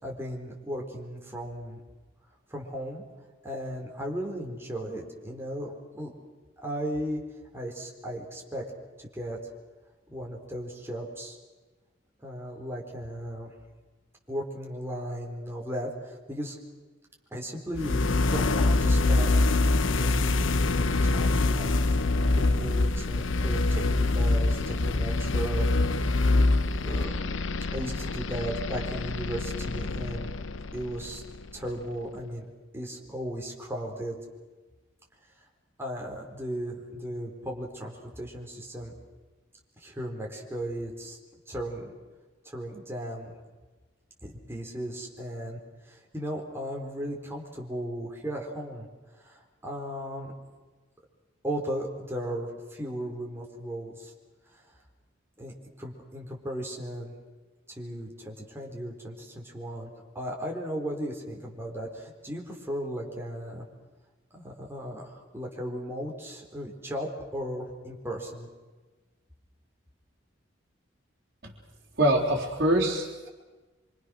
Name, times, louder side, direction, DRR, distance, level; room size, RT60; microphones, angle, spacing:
voice 1, 0.0-1.8 2.5-3.0 3.4-6.1 6.6-7.2 7.5-8.7 9.0-9.4 10.1-11.4 12.2-13.5 14.3-16.6 17.3-19.4 20.0-26.4 26.7-27.3 27.7-30.3 30.7-31.2 31.5-34.2 35.8-38.9 39.8-41.2 41.5-41.9 42.4-43.3 44.2-48.9 49.2-50.3 51.4-54.1 54.5-54.6 55.4-57.1 57.7-63.7 64.3-68.5, equal, 15° right, -1 dB, 4.3 m, -36 dB
sound 1, 17.7-31.6, left 2 dB, 85° left, 0.8 m, -25 dB
voice 2, 72.0-73.3, right 1 dB, 55° right, -5 dB, 3.8 m, -24 dB
26.0 x 25.5 x 6.5 m, 1.3 s
head